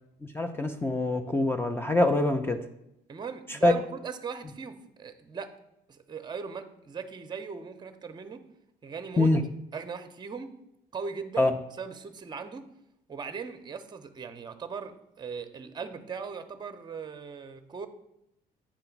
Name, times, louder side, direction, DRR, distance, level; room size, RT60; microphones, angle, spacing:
voice 1, 0.2-2.6 3.5-3.7 9.2-9.4 11.4-11.5, left 2 dB, 15° left, 6 dB, 0.5 m, -24 dB
voice 2, 3.1-5.5 5.9-8.4 8.8-9.3 9.7-10.5 10.9-12.6 13.1-17.9, right 5 dB, 25° right, 8 dB, 0.7 m, -39 dB
8.5 x 3.0 x 5.8 m, 0.81 s
cardioid pair, 110°, 17 cm